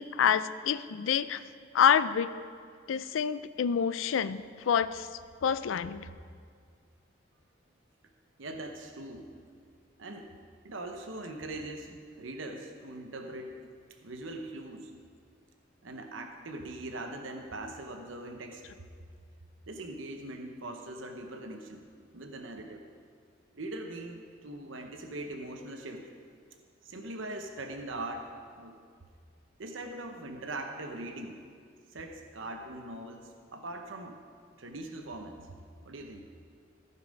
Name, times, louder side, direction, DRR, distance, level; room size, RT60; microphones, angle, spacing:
voice 1, 0.0-1.4 1.7-2.3 2.9-5.1 5.4-6.1, left 8 dB, 85° left, 15 dB, 0.4 m, -27 dB
voice 2, 8.4-9.3 10.0-10.3 10.6-13.7 14.0-14.9 15.8-18.6 19.7-21.8 22.1-22.8 23.5-26.1 26.8-28.8 29.6-31.4 31.9-34.2 34.6-35.5 35.8-36.2, right 2 dB, 85° right, 4 dB, 0.9 m, -41 dB
15.0 x 5.6 x 5.2 m, 2.1 s
head